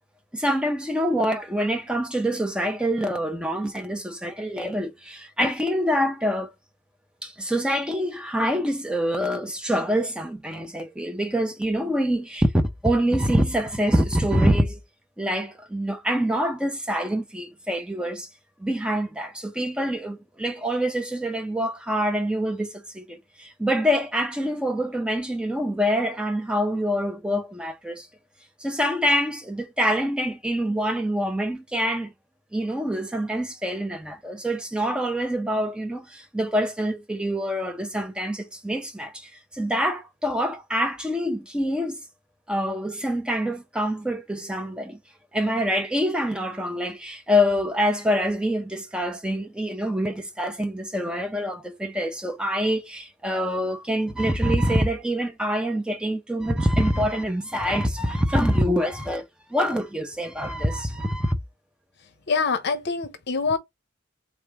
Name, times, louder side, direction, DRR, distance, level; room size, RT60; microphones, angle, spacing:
voice 1, 0.3-6.5 7.2-14.8 15.2-18.3 18.6-28.1 28.6-32.1 32.5-42.0 42.5-45.0 45.3-59.2 59.5-61.4, equal, 5° right, 0.6 m, -25 dB
voice 2, 62.3-63.6, left 4 dB, 55° left, 0.7 m, -25 dB
3.7 x 3.3 x 3.4 m
head